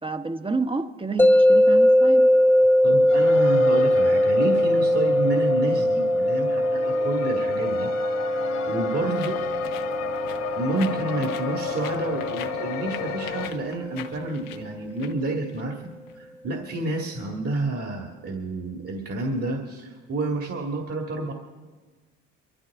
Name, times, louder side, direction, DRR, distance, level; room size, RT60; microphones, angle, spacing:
voice 1, 0.0-2.3 9.1-9.3, right 4 dB, 15° right, 1.1 m, -30 dB
sound 1, 1.2-14.3, equal, 5° left, 0.9 m, -21 dB
voice 2, 2.8-7.9 8.7-9.4 10.6-15.8 16.1-21.3, right 2 dB, 45° right, 2.1 m, -29 dB
sound 2, 3.1-13.5, left 6 dB, 55° left, 1.6 m, -33 dB
sound 3, 9.2-16.1, left 10 dB, 80° left, 1.0 m, -44 dB
23.0 x 13.5 x 3.6 m
hypercardioid pair, 60°, 33 cm